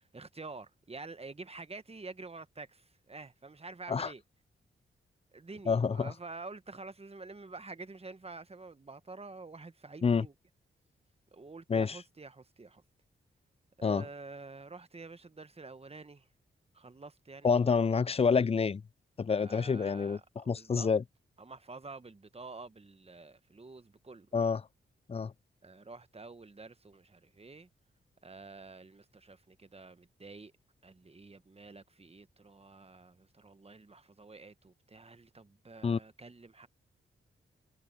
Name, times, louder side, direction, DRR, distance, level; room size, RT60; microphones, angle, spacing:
voice 1, 0.0-4.2 5.3-10.3 11.3-12.8 13.8-16.3 16.7-17.6 19.4-20.9 21.4-24.3 25.6-27.7 28.2-30.5 30.8-36.7, right 3 dB, 30° right, 1.3 m, -48 dB
voice 2, 5.7-6.1 10.0-10.3 11.7-12.0 13.8-14.0 17.4-18.8 19.2-21.0 24.3-24.6 25.1-25.3 35.8-36.0, left 5 dB, 30° left, 0.4 m, -28 dB
supercardioid pair, 45°, 21 cm